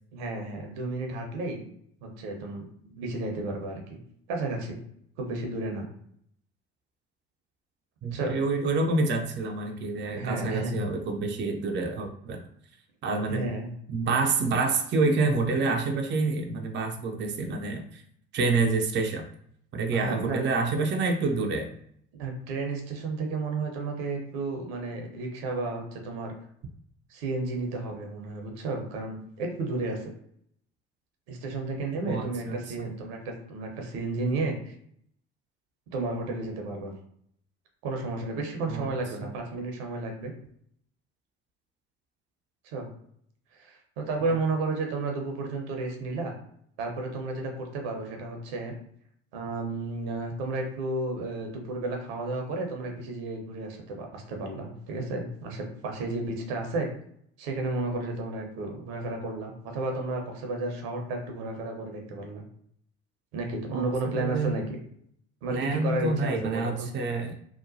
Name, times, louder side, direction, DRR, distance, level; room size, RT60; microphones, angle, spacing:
voice 1, 0.1-1.6 2.0-4.0 4.3-4.8 5.2-5.9 8.1-8.4 10.1-10.7 13.3-13.7 19.9-20.4 22.1-26.3 27.1-30.1 31.3-34.7 35.9-36.9 37.8-40.3 42.6-42.9 43.5-46.3 46.8-48.7 49.3-56.9 57.4-62.4 63.3-64.8 65.4-66.9, right 2 dB, 70° right, 2 dB, 0.8 m, -32 dB
voice 2, 8.0-12.4 13.0-13.5 13.9-18.0 18.3-19.2 19.7-21.7 32.1-32.9 38.7-38.9 44.2-44.4 63.7-64.6 65.5-67.3, right 3 dB, 35° right, 3 dB, 0.5 m, -28 dB
2.9 x 2.1 x 2.6 m, 0.67 s
hypercardioid pair, 60°, 31 cm